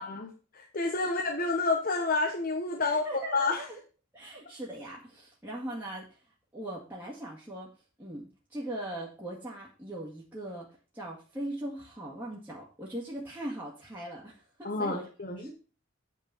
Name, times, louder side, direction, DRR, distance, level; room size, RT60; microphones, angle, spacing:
voice 1, 0.0-3.1 3.3-3.6 14.6-15.5, left 3 dB, 40° left, 2 dB, 1.1 m, -29 dB
voice 2, 2.8-3.8 4.1-6.2 6.5-7.7 8.0-10.7 10.9-15.1 15.4-15.5, right 1 dB, 10° right, -5 dB, 2.1 m, -40 dB
8.7 x 4.6 x 7.0 m, 0.36 s
head